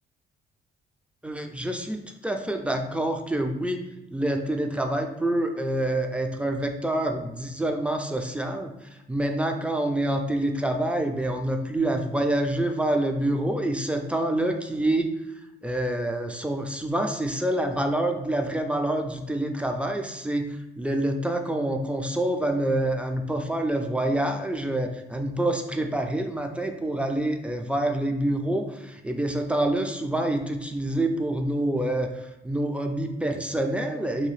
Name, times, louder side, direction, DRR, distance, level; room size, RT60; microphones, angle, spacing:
voice 1, 1.2-3.8 4.1-15.1 15.6-34.3, right 1 dB, 5° right, 5 dB, 0.3 m, -27 dB
2.7 x 2.3 x 3.1 m, 0.98 s
cardioid pair, 90°, 20 cm